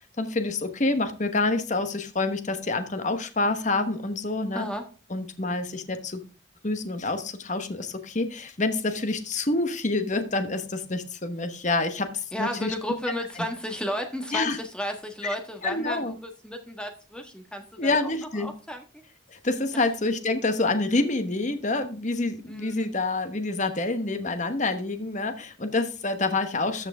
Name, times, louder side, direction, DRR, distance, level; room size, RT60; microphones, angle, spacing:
voice 1, 0.2-4.7 5.1-6.2 6.6-12.7 14.3-14.6 15.6-16.1 17.8-18.5 19.3-26.9, left 2 dB, 40° left, 9 dB, 1.1 m, -27 dB
voice 2, 4.5-4.8 12.3-19.0 19.7-19.8 22.5-22.8, equal, 5° left, 4 dB, 1.5 m, -33 dB
13.5 x 5.9 x 3.5 m, 0.35 s
head